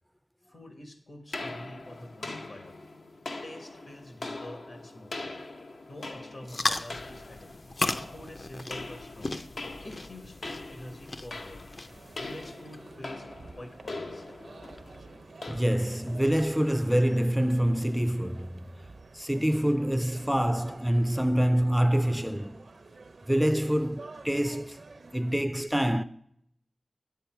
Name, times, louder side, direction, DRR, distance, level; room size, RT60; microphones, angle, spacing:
voice 1, 0.5-2.8 3.4-5.4 5.9-7.6 8.1-9.4 9.8-11.7 12.2-13.3 13.6-14.4, left 1 dB, 65° left, 1.4 m, -46 dB
sound 1, 1.3-17.7, left 2 dB, 85° left, 0.8 m, -42 dB
sound 2, 6.4-12.8, left 2 dB, 50° left, 0.5 m, -36 dB
sound 3, 11.9-25.4, right 3 dB, 80° right, 0.6 m, -50 dB
voice 2, 15.5-18.7 19.1-22.7 23.3-24.8 25.1-26.0, equal, 5° right, 0.3 m, -26 dB
9.5 x 8.4 x 4.4 m
wide cardioid pair, 65°, 0 cm